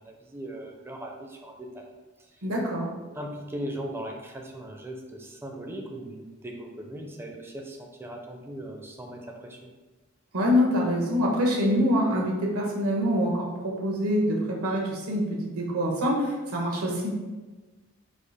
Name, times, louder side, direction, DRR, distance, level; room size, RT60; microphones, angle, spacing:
voice 1, 0.0-1.8 3.1-9.6, right 1 dB, 10° right, 1 dB, 0.5 m, -39 dB
voice 2, 2.4-2.9 10.3-17.1, equal, 85° right, -2 dB, 1.2 m, -25 dB
4.9 x 2.4 x 4.1 m, 1.2 s
head